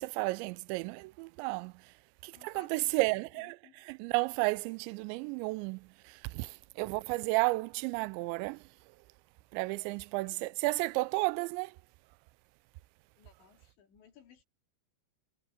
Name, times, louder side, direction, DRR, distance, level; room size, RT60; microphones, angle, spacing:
voice 1, 0.0-1.9 2.2-8.7 9.5-11.8, right 23 dB, 90° right, 2.8 m, -33 dB
voice 2, 2.3-3.0 3.4-3.8 9.8-9.9 10.2-10.4 13.2-14.4, left 8 dB, 80° left, 5.8 m, -59 dB
omnidirectional pair, 5.1 m